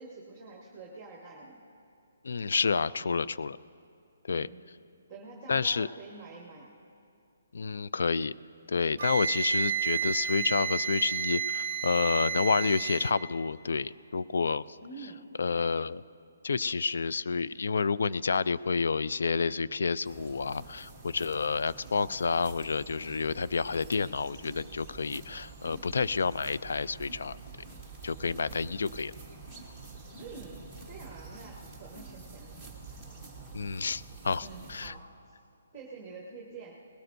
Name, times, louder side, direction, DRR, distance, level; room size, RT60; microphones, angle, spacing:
voice 1, 0.0-1.5 3.0-3.3 4.3-4.6 5.1-6.7 9.6-9.8 14.8-15.2 30.2-32.5 32.9-33.0 34.4-35.3 35.7-36.7, right 3 dB, 10° right, -2 dB, 1.3 m, -47 dB
voice 2, 2.2-3.6 4.2-4.5 5.5-5.9 7.5-8.3 8.7-14.7 15.4-16.0 16.4-27.4 28.0-29.1 33.5-34.9, left 5 dB, 70° left, 17 dB, 0.3 m, -29 dB
Wind instrument woodwind instrument, 9.0-13.2, right 8 dB, 45° right, 0.7 m, -31 dB
sound 1, 20.0-34.9, right 4 dB, 5° left, 1.4 m, -47 dB
20.0 x 17.5 x 2.6 m, 2.4 s
hypercardioid pair, 175°, 0 cm